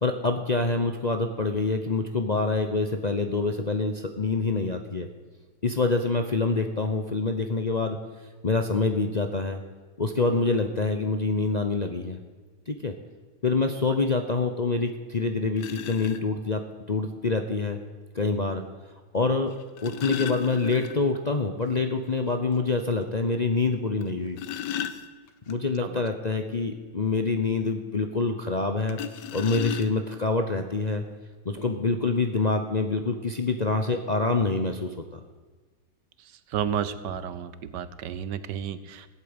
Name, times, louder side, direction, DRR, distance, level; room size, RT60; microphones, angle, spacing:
voice 1, 0.0-5.1 5.6-8.0 8.4-9.6 10.0-12.2 12.7-12.9 13.4-16.6 16.9-17.8 18.1-18.6 19.1-19.5 19.8-24.4 25.5-29.0 29.3-31.0 31.4-35.2, left 3 dB, 40° left, 5 dB, 0.6 m, -26 dB
sound 1, 14.9-15.0 15.6-16.2 17.6-17.7 19.5-21.2 21.6-21.7 22.1-22.2 22.7-22.8 24.0-25.5 28.9-30.2 31.1-31.2 31.6-31.8, left 9 dB, 80° left, 1.4 m, -35 dB
voice 2, 36.5-39.1, right 8 dB, 85° right, 14 dB, 1.5 m, -32 dB
15.0 x 8.6 x 8.8 m, 1.4 s
omnidirectional pair, 1.8 m